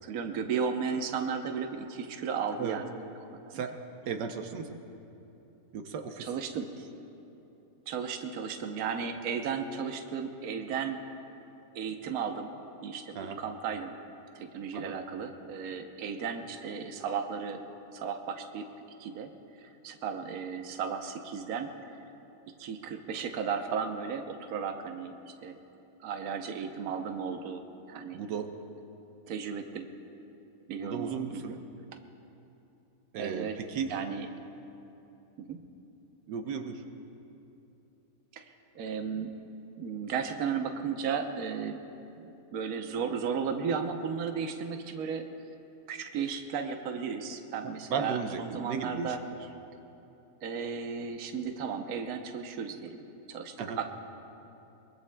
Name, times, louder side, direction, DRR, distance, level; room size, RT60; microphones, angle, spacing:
voice 1, 0.0-2.9 3.3-3.6 6.2-6.7 7.9-11.0 11.7-12.5 12.8-14.0 14.3-17.6 17.9-18.7 19.0-19.3 19.6-21.7 22.6-25.1 25.4-25.6 26.0-28.2 29.3-29.9 30.7-31.6 33.2-33.6 33.9-34.3 35.4-35.6 38.3-38.4 38.7-39.4 39.8-41.8 42.2-45.2 45.9-49.2 50.4-53.0 53.3-53.9, right 6 dB, 65° right, 5 dB, 1.3 m, -34 dB
voice 2, 3.5-4.8 5.7-6.3 13.1-13.4 14.7-14.9 28.1-28.5 30.8-31.6 33.1-33.9 36.3-36.8 47.9-49.2 53.6-53.8, right 6 dB, 90° right, 5 dB, 1.5 m, -35 dB
23.0 x 22.5 x 2.2 m, 2.9 s
omnidirectional pair, 1.8 m